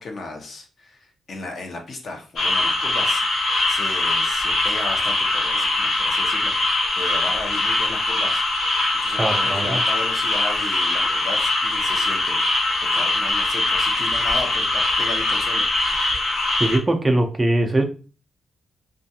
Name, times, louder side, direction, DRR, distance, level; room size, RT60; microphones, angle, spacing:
voice 1, 0.0-3.3 3.7-8.8 9.0-16.3, left 3 dB, 55° left, 2 dB, 0.7 m, -35 dB
sound 1, 2.4-16.8, left 2 dB, 80° left, 0.9 m, -22 dB
voice 2, 9.2-9.8 16.6-17.8, right 1 dB, 20° right, 4 dB, 0.4 m, -21 dB
2.4 x 2.2 x 2.7 m, 0.35 s
cardioid pair, 85°, 0 cm